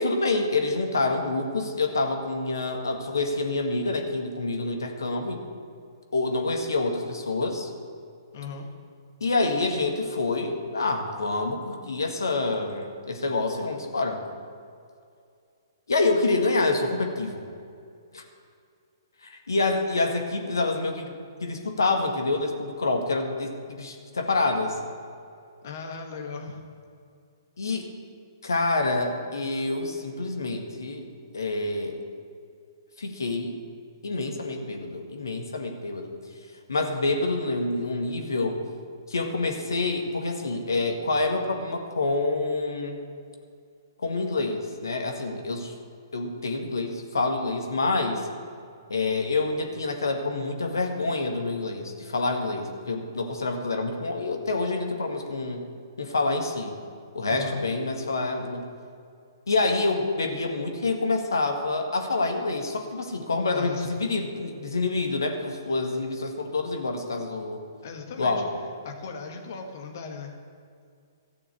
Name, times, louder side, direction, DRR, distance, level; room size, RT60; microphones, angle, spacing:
voice 1, 0.0-5.4 6.1-7.7 9.2-14.2 15.9-17.4 18.1-18.2 19.2-24.8 27.6-27.9 28.4-31.0 31.3-32.0 33.0-33.6 34.0-36.1 36.7-38.6 39.1-43.0 44.0-45.7 46.1-48.3 48.9-55.6 56.0-56.8 57.1-58.7 59.5-67.6 68.2-68.5, left 3 dB, 70° left, 4 dB, 1.7 m, -27 dB
voice 2, 8.3-8.7 25.6-26.6 57.3-57.6 63.5-63.9 67.8-68.5 68.8-70.3, left 5 dB, 50° left, 4 dB, 1.8 m, -37 dB
14.0 x 7.1 x 8.2 m, 2.3 s
figure-of-eight pair, 120°, 2 cm